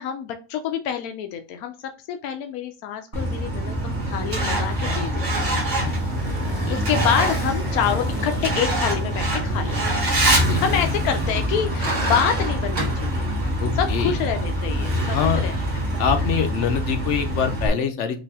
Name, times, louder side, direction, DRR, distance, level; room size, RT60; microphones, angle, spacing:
voice 1, 0.0-5.5 6.7-10.0 10.4-13.3 13.8-15.5, left 8 dB, 85° left, 6 dB, 1.1 m, -27 dB
Truck, 3.1-17.7, right 1 dB, 55° right, 1.9 m, -24 dB
sound 1, 5.9-11.3, left 4 dB, 25° left, 1.0 m, -38 dB
voice 2, 13.6-14.1 15.1-15.4 16.0-18.2, left 7 dB, 65° left, 7 dB, 0.8 m, -24 dB
5.1 x 2.7 x 3.5 m, 0.32 s
omnidirectional pair, 1.5 m